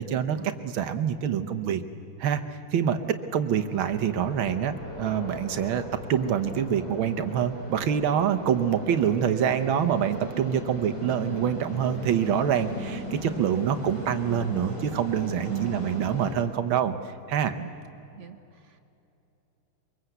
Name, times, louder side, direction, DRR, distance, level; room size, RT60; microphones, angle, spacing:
voice 1, 0.0-0.4 0.6-1.8 2.2-5.8 6.1-16.9 17.3-17.5, right 8 dB, 75° right, 9 dB, 1.9 m, -26 dB
sound 1, 3.5-16.3, equal, 50° left, 8.8 m, -38 dB
voice 2, 15.5-15.9 17.6-17.7 18.1-18.8, right 12 dB, 50° right, 8 dB, 1.0 m, -37 dB
23.0 x 23.0 x 8.1 m, 2.9 s
omnidirectional pair, 2.3 m